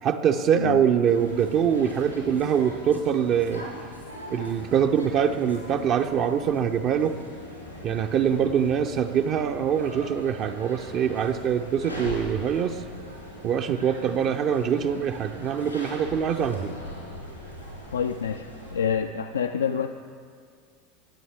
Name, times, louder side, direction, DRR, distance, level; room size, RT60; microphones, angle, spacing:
voice 1, 0.0-3.7 4.3-7.1 7.8-12.8 13.4-16.7, right 8 dB, 40° right, 6 dB, 0.5 m, -24 dB
sound 1, 1.0-18.7, equal, 90° left, 3.5 m, -41 dB
voice 2, 17.9-18.5 18.7-19.9, left 7 dB, 75° left, 7 dB, 0.3 m, -27 dB
16.5 x 9.1 x 3.5 m, 2.1 s
figure-of-eight pair, 80°, 0 cm